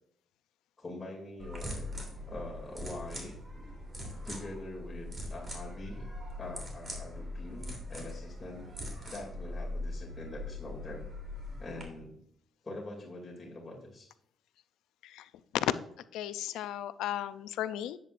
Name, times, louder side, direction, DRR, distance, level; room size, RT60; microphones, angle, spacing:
voice 1, 0.8-1.9 2.3-3.4 4.2-6.0 6.4-8.7 9.1-11.1 11.6-12.2 12.6-14.1, left 2 dB, 25° left, -3 dB, 2.7 m, -44 dB
sound 1, 1.4-11.8, left 1 dB, 30° right, 3.1 m, -41 dB
voice 2, 16.1-18.0, left 12 dB, 90° left, 15 dB, 0.4 m, -34 dB
10.5 x 8.4 x 2.5 m, 0.70 s
cardioid pair, 90°, 0 cm